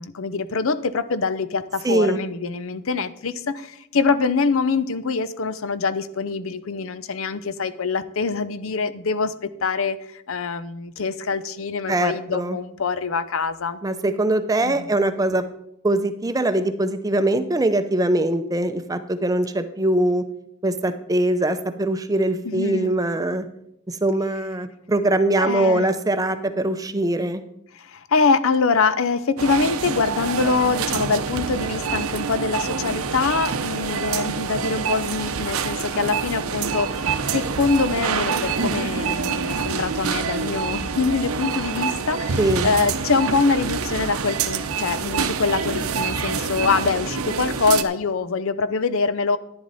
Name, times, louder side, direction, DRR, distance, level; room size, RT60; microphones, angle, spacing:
voice 1, 0.0-13.8 14.6-14.9 22.4-22.9 25.4-25.9 27.7-49.4, left 4 dB, 70° left, 14 dB, 0.6 m, -24 dB
voice 2, 1.8-2.2 11.9-12.6 13.8-15.4 15.8-20.2 20.6-23.5 23.9-27.4 42.4-42.7, right 1 dB, 15° right, 10 dB, 0.6 m, -22 dB
sound 1, 29.4-47.8, right 5 dB, 85° right, 0.8 m, -26 dB
10.5 x 10.5 x 4.1 m, 0.77 s
head